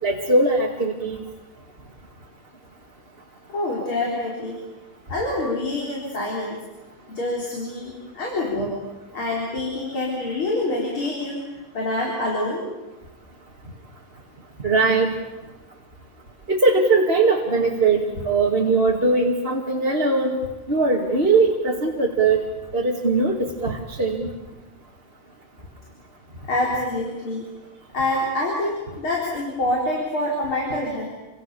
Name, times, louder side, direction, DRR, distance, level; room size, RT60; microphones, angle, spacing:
voice 1, 0.0-1.2 12.6-12.7 14.6-15.1 16.5-20.4 20.7-22.4 22.7-24.3, right 3 dB, 30° right, -1 dB, 2.5 m, -20 dB
voice 2, 3.5-4.6 5.1-6.6 7.1-8.7 9.1-11.4 11.7-12.7 26.4-27.5 27.9-31.0, left 1 dB, 80° left, -2 dB, 5.3 m, -26 dB
28.5 x 26.0 x 7.0 m, 1.1 s
omnidirectional pair, 2.3 m